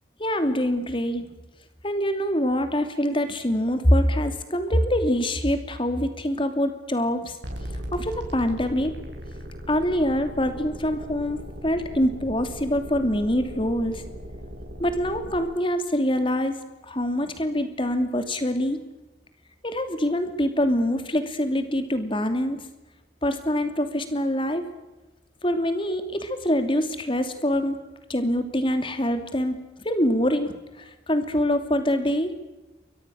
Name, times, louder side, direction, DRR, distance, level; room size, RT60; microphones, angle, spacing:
voice 1, 0.2-1.3 1.8-7.4 7.9-8.9 9.7-14.0 14.8-16.6 16.9-18.8 19.6-22.6 23.2-24.6 25.4-27.8 28.1-30.5 31.1-32.3, equal, 30° left, 8 dB, 2.8 m, -24 dB
sound 1, 7.4-15.5, equal, 85° right, 6.1 m, -38 dB
28.5 x 23.5 x 6.5 m, 1.1 s
head